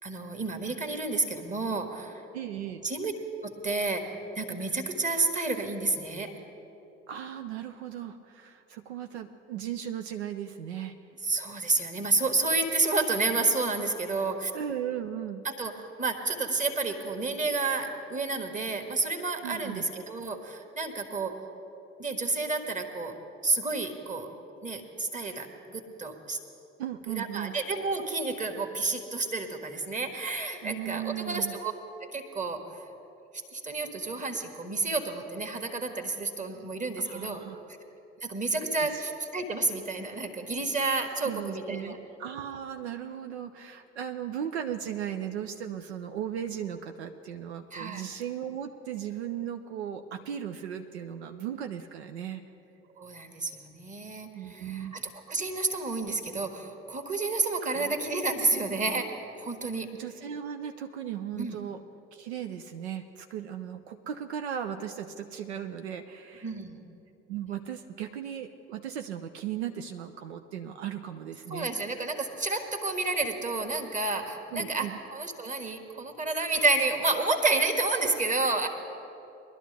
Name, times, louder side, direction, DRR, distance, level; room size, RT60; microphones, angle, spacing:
voice 1, 0.0-2.2 2.8-3.1 3.4-6.4 11.2-14.5 15.4-21.4 22.0-23.2 23.4-24.3 24.6-26.4 27.1-31.7 32.0-32.9 33.5-37.4 38.2-42.0 47.7-48.0 53.0-60.0 61.3-61.6 66.4-66.8 71.5-78.7, right 3 dB, 25° right, 5 dB, 1.5 m, -30 dB
voice 2, 2.3-2.8 7.1-11.0 14.5-15.5 19.4-19.8 26.8-27.6 30.6-31.6 37.0-37.6 38.8-39.0 41.2-52.4 54.3-54.9 57.6-58.0 59.9-61.8 62.1-66.5 67.3-71.7 74.5-75.0, right 9 dB, 75° right, 6 dB, 0.6 m, -37 dB
21.5 x 12.0 x 3.4 m, 2.9 s
figure-of-eight pair, 55°, 33 cm